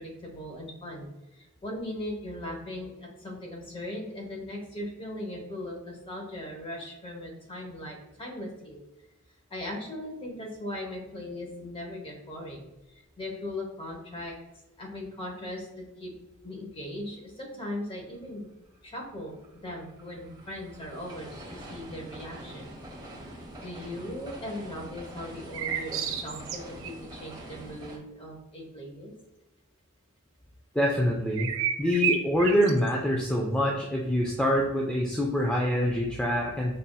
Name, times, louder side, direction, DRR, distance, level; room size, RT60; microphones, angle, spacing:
voice 1, 0.0-8.8 9.5-14.3 14.8-16.1 16.4-18.5 18.8-22.7 23.6-29.1, left 1 dB, 25° left, 0 dB, 0.9 m, -39 dB
sound 1, 18.6-28.0, right 1 dB, 20° right, 0.7 m, -45 dB
sound 2, 25.5-26.9 31.3-32.9, right 8 dB, 65° right, 0.4 m, -30 dB
voice 2, 30.7-31.5 31.8-36.8, equal, 5° left, -2 dB, 0.3 m, -25 dB
5.4 x 2.5 x 2.2 m, 1.0 s
head